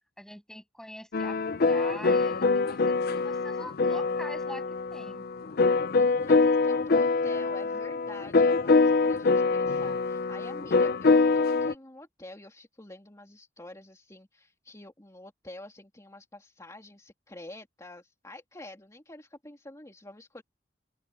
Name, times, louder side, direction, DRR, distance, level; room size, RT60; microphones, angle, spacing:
voice 1, 0.2-5.3 7.7-7.8, equal, 5° left, 7.6 m, -44 dB
sound 1, 1.1-11.7, left 4 dB, 60° left, 0.6 m, -24 dB
voice 2, 5.9-20.4, left 1 dB, 20° left, 3.0 m, -48 dB
open air
head